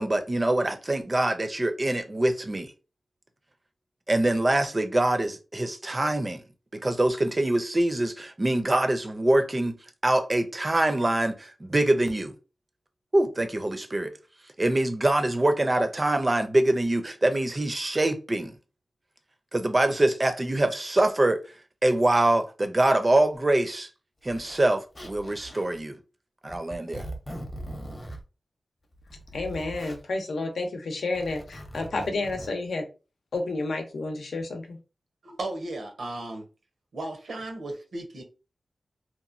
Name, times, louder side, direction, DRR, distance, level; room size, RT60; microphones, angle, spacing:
voice 1, 0.0-2.7 4.1-6.4 6.7-9.8 10.0-12.3 13.1-14.1 14.6-18.6 19.5-21.4 21.8-23.9 24.2-26.0 26.4-27.1, right 1 dB, 30° right, 0.5 m, -24 dB
Zipper (clothing), 23.3-23.4 24.2-24.7 24.9-25.8 26.5-28.2 28.9-30.0 31.0-32.5, right 1 dB, 25° left, 0.7 m, -41 dB
voice 2, 29.3-32.8 33.3-34.8, left 2 dB, 85° left, 0.7 m, -30 dB
voice 3, 35.2-36.4 36.9-38.2, right 2 dB, 80° right, 0.8 m, -35 dB
2.9 x 2.2 x 2.5 m
wide cardioid pair, 80°, 0 cm